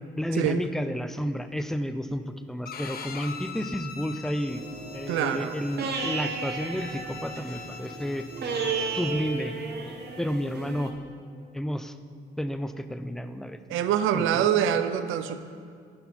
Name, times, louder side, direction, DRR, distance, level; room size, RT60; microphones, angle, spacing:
voice 1, 0.2-4.6 4.9-8.3 8.8-9.6 10.2-10.9 11.5-12.0 12.4-13.8 14.1-14.5, equal, ahead, 9 dB, 0.3 m, -31 dB
Bowed string instrument, 2.6-9.2, left 6 dB, 50° left, 0.6 m, -43 dB
sound 1, 4.5-10.9, right 4 dB, 55° right, 1.0 m, -34 dB
voice 2, 5.1-5.5 13.7-15.4, right 9 dB, 85° right, 10 dB, 0.4 m, -25 dB
11.0 x 4.3 x 4.2 m, 2.2 s
cardioid pair, 90°, 20 cm